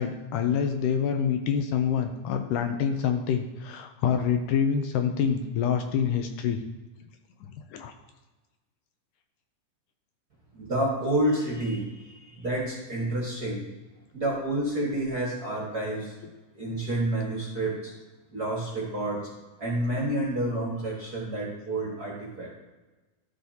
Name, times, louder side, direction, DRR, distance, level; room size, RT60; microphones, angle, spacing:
voice 1, 0.0-6.6 7.4-7.9, left 7 dB, 80° left, 5 dB, 2.1 m, -26 dB
voice 2, 10.5-13.6 14.1-16.1 16.5-17.9 18.3-19.2 19.6-22.5, right 1 dB, 40° right, -4 dB, 1.4 m, -29 dB
13.0 x 6.6 x 2.8 m, 1.2 s
omnidirectional pair, 4.1 m